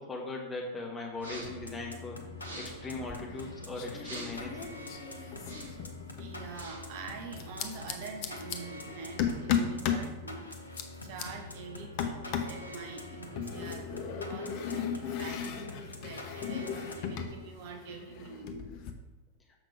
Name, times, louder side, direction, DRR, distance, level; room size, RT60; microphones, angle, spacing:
voice 1, 0.0-2.2 2.5-4.7, left 2 dB, 15° left, -1 dB, 1.5 m, -39 dB
sound 1, 1.1-1.7 2.3-2.9 4.0-4.5 5.3-5.9 6.4-6.9, right 2 dB, 65° right, 1.6 m, -45 dB
sound 2, 1.4-17.7, left 2 dB, 80° left, 0.8 m, -45 dB
sound 3, 2.9-3.5 3.7-6.4 7.4-8.6 9.2-10.1 10.5-11.2 12.0-12.6 13.4-17.4 17.6-18.9, left 8 dB, 45° left, 0.7 m, -35 dB
voice 2, 6.2-10.5 11.0-18.7, right 4 dB, 50° right, 3 dB, 0.9 m, -45 dB
6.9 x 5.8 x 3.4 m, 1.0 s
figure-of-eight pair, 90°, 0 cm